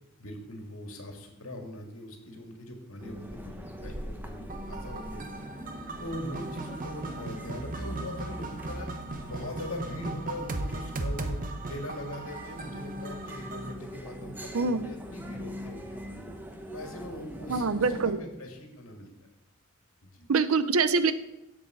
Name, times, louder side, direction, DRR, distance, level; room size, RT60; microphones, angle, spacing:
voice 1, 0.2-5.5 6.0-8.9 9.2-11.4 11.7-16.3 16.7-19.1 20.0-20.3, left 1 dB, 85° left, 3 dB, 1.9 m, -41 dB
sound 1, 3.0-18.1, equal, 10° right, 0.8 m, -42 dB
sound 2, 4.5-13.7, right 2 dB, 40° right, 0.8 m, -38 dB
voice 2, 17.5-18.2 20.3-21.1, right 4 dB, 90° right, 13 dB, 0.6 m, -24 dB
7.9 x 7.8 x 6.1 m, 0.94 s
head